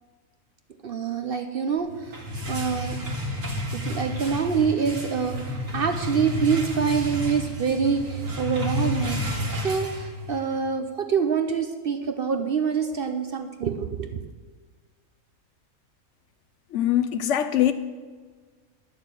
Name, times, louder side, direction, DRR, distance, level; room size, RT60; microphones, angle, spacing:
voice 1, 0.8-2.2 2.5-3.0 3.7-9.2 9.6-14.2, right 6 dB, 50° right, 6 dB, 0.7 m, -26 dB
sound 1, 1.9-10.5, equal, 70° right, 2.1 m, -31 dB
voice 2, 16.7-17.7, left 11 dB, 65° left, 11 dB, 0.9 m, -22 dB
11.0 x 6.7 x 8.2 m, 1.5 s
omnidirectional pair, 1.5 m